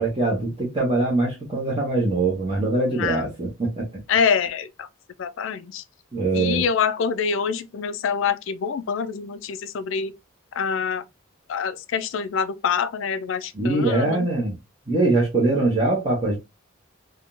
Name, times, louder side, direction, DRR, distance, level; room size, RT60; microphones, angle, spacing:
voice 1, 0.0-4.0 6.1-6.6 13.5-14.6 14.9-16.4, right 2 dB, 25° right, 0.9 m, -22 dB
voice 2, 2.9-3.2 4.1-4.9 5.2-5.8 6.3-10.1 10.5-11.0 11.5-14.3, left 6 dB, 65° left, 0.4 m, -25 dB
3.5 x 2.3 x 2.5 m
head